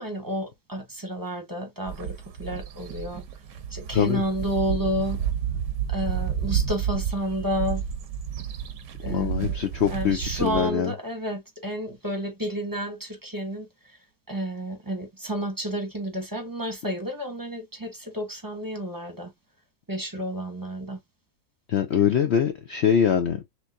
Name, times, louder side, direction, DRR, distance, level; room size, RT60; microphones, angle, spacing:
voice 1, 0.0-3.2 3.7-5.2 5.9-7.8 9.0-9.6 9.9-14.0 14.3-19.3 19.9-21.0, equal, 15° right, 0.8 m, -31 dB
sound 1, 1.9-10.7, right 8 dB, 85° right, 1.5 m, -31 dB
voice 2, 9.1-10.9 21.7-23.4, left 8 dB, 80° left, 0.6 m, -23 dB
6.3 x 2.8 x 2.5 m
omnidirectional pair, 1.8 m